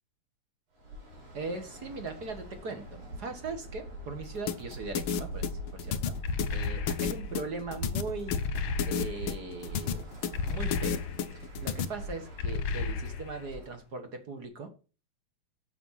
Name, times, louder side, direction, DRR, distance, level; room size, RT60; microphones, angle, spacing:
Bird, 0.8-13.9, equal, 85° right, 6.1 m, -42 dB
voice 1, 1.3-5.5 5.7-6.1 6.5-8.4 8.8-10.1 10.5-11.0 11.3-14.7, right 3 dB, 45° right, 7 dB, 1.5 m, -39 dB
sound 1, 4.5-11.9, left 8 dB, 80° left, 1.1 m, -32 dB
sound 2, 6.2-7.3 8.3-9.4 10.3-11.4 12.4-13.5, left 4 dB, 65° left, 1.7 m, -33 dB
8.7 x 7.1 x 5.8 m, 0.34 s
omnidirectional pair, 3.4 m